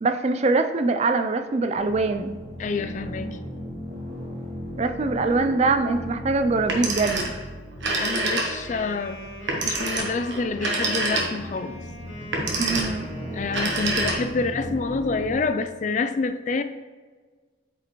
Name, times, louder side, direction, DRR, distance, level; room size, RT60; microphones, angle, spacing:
voice 1, 0.0-2.4 4.8-7.3 12.6-13.1, right 3 dB, 35° right, 7 dB, 0.4 m, -23 dB
sound 1, 1.7-15.4, equal, 80° right, 1.8 m, -37 dB
voice 2, 2.6-3.4 8.0-9.3 9.6-11.8 13.3-16.6, left 4 dB, 40° left, 9 dB, 0.3 m, -27 dB
Telephone, 6.6-7.4 7.7-8.8 9.5-11.6 12.2-13.0 13.5-14.5, right 2 dB, 65° right, 1.2 m, -26 dB
Wind instrument woodwind instrument, 8.2-14.1, equal, 85° left, 2.0 m, -41 dB
8.5 x 4.9 x 3.1 m, 1.4 s
head